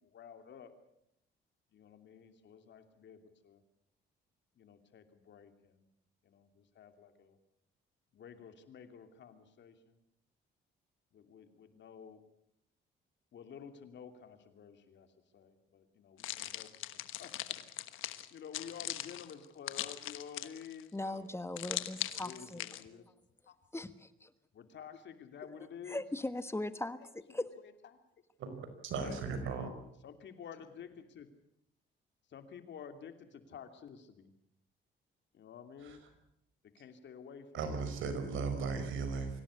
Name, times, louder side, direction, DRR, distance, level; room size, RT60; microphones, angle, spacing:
voice 1, 0.0-0.7 1.7-3.6 4.6-5.8 6.2-7.4 8.1-10.0 11.1-12.2 13.3-15.1 15.3-21.3 22.2-23.1 23.5-23.6 24.5-26.0 28.9-29.7 30.0-31.3 32.3-34.3 35.3-36.0 36.7-37.7, left 7 dB, 65° left, 8 dB, 2.9 m, -51 dB
sound 1, 16.2-20.8 21.6-22.8, left 14 dB, 85° left, 1.3 m, -40 dB
voice 2, 20.9-22.6 23.7-24.3 25.9-27.0 27.3-27.5, left 2 dB, 15° left, 12 dB, 1.3 m, -39 dB
voice 3, 28.4-29.7 35.8-36.0 37.5-39.3, right 5 dB, 80° right, 9 dB, 5.0 m, -37 dB
24.5 x 17.0 x 8.4 m, 0.75 s
cardioid pair, 90°, 20 cm